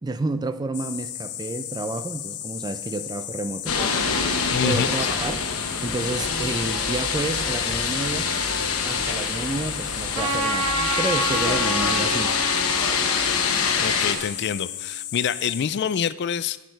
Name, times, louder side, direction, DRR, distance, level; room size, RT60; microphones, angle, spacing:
voice 1, 0.0-4.3 4.6-5.5 5.8-8.3 8.8-10.7 11.0-12.3, right 2 dB, 20° right, 11 dB, 0.4 m, -30 dB
sound 1, 0.7-15.6, left 11 dB, 85° left, 0.8 m, -35 dB
sound 2, 3.7-14.1, left 5 dB, 65° left, 1.1 m, -25 dB
voice 2, 4.5-5.1 13.8-16.6, left 7 dB, 50° left, 16 dB, 0.3 m, -26 dB
Trumpet, 10.1-14.8, right 3 dB, 75° right, 1.4 m, -30 dB
10.5 x 8.4 x 4.5 m, 1.0 s
head